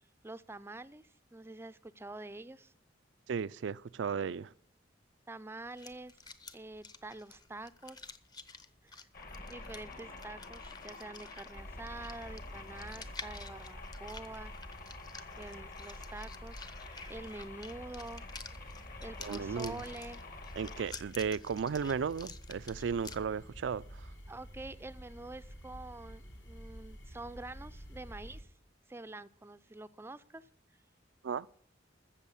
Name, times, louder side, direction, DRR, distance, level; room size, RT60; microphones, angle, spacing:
voice 1, 0.2-2.7 5.3-6.2 6.5-8.1 8.8-9.1 9.5-14.5 15.4-18.3 19.0-20.3 24.3-28.5 28.9-30.5, right 2 dB, 15° right, 0.5 m, -47 dB
voice 2, 3.3-4.5 19.2-19.8 20.6-24.1 31.2-31.5, right 6 dB, 70° right, 0.4 m, -35 dB
sound 1, 5.7-23.2, left 4 dB, 20° left, 0.8 m, -51 dB
sound 2, 9.1-20.9, left 3 dB, 50° left, 2.0 m, -49 dB
sound 3, 11.5-28.4, equal, 75° left, 3.2 m, -50 dB
14.0 x 7.4 x 7.0 m
head